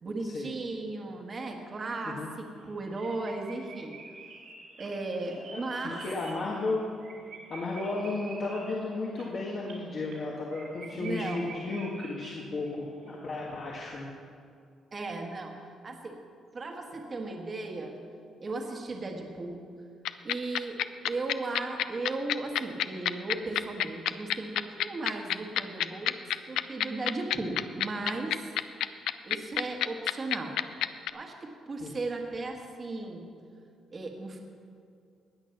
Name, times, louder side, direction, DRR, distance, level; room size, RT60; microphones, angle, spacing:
voice 1, 0.0-4.0 4.8-6.0 10.9-11.5 14.9-15.5 15.8-16.2 16.5-18.0 18.4-19.6 20.2-26.2 26.5-28.5 29.3-30.7 31.1-33.2 33.9-34.4, right 2 dB, 35° right, 2 dB, 1.5 m, -36 dB
sound 1, 2.2-2.3 2.6-2.7 2.9-12.8 13.0-13.2, right 4 dB, 80° right, 3.4 m, -48 dB
voice 2, 5.5-6.9 7.5-14.1 31.8-31.9, left 3 dB, 50° left, -3 dB, 1.7 m, -34 dB
sound 2, 20.0-31.1, left 12 dB, 85° left, 0.4 m, -27 dB
19.0 x 6.4 x 5.9 m, 2.3 s
cardioid pair, 90°, 0 cm